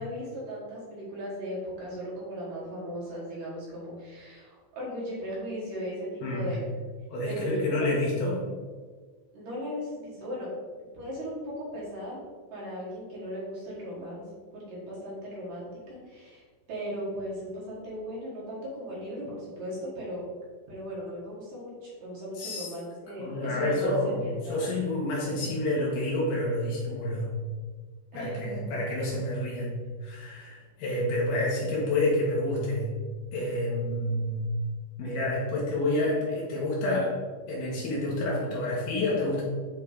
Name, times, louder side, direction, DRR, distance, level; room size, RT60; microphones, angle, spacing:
voice 1, 0.0-6.7 7.2-8.0 9.3-10.5 10.9-12.2 12.5-14.2 14.5-20.2 20.7-24.7 28.1-28.7, equal, 55° right, -7 dB, 2.7 m, -37 dB
voice 2, 6.2-6.5 7.1-8.5 22.4-22.7 23.2-27.3 28.1-32.9 33.3-34.5 35.0-37.2 37.5-39.4, left 1 dB, 70° left, -4 dB, 2.4 m, -29 dB
9.1 x 3.2 x 3.5 m, 1.5 s
omnidirectional pair, 5.6 m